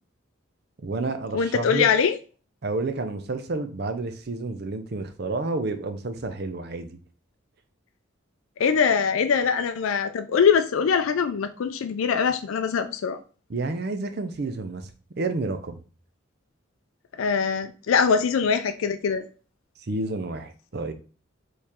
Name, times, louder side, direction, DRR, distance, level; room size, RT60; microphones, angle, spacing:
voice 1, 0.8-1.9 2.6-7.0 13.5-14.9 15.2-15.8 19.8-20.9, right 3 dB, 50° right, 0.5 m, -30 dB
voice 2, 1.3-2.2 8.6-13.2 17.2-19.2, left 6 dB, 80° left, 0.4 m, -22 dB
4.5 x 3.2 x 3.6 m
head